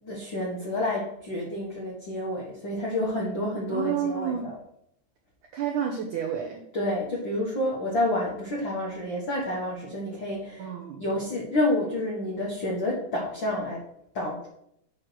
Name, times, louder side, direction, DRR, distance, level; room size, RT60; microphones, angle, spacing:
voice 1, 0.0-4.5 6.7-10.7 11.0-13.8 14.1-14.5, left 1 dB, 60° left, -3 dB, 1.2 m, -29 dB
voice 2, 3.7-4.5 5.5-6.6 10.6-11.0, right 8 dB, 80° right, 0 dB, 1.8 m, -30 dB
8.4 x 5.0 x 6.0 m, 0.72 s
omnidirectional pair, 4.9 m